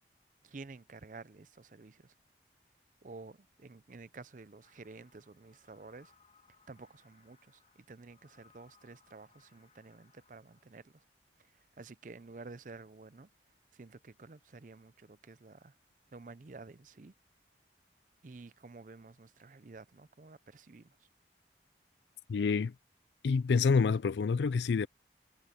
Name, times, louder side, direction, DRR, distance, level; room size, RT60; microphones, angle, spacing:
voice 1, 0.4-2.1 3.0-6.1 6.7-11.0 11.4-13.3 13.7-15.8 16.1-17.1 18.2-21.1, right 3 dB, 45° right, 0.5 m, -51 dB
sound 1, 4.6-10.7, left 5 dB, 40° left, 2.9 m, -68 dB
voice 2, 22.3-22.7 23.2-24.9, left 5 dB, 80° left, 0.4 m, -27 dB
head